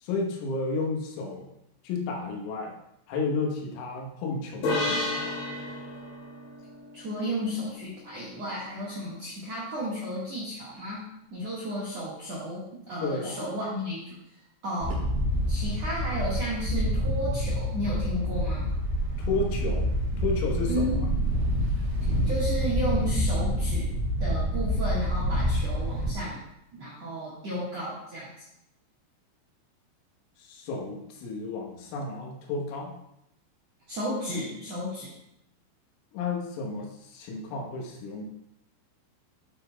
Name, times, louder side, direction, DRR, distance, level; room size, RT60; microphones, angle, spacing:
voice 1, 0.0-1.5 1.8-2.8 3.1-5.4 13.0-13.5 19.2-19.9 20.2-20.9 30.4-33.0 36.1-38.3, left 3 dB, 85° left, 1 dB, 3.8 m, -32 dB
sound 1, 4.6-8.1, left 2 dB, 65° left, 4.4 m, -32 dB
voice 2, 6.9-14.4 14.6-15.0 15.5-18.7 20.7-21.0 22.0-23.9 24.2-26.4 26.7-28.4 33.9-35.1, equal, 65° right, -6 dB, 1.6 m, -33 dB
Wind, 14.8-26.1, equal, 50° right, 4.0 m, -27 dB
11.0 x 8.0 x 2.3 m, 0.82 s
omnidirectional pair, 5.7 m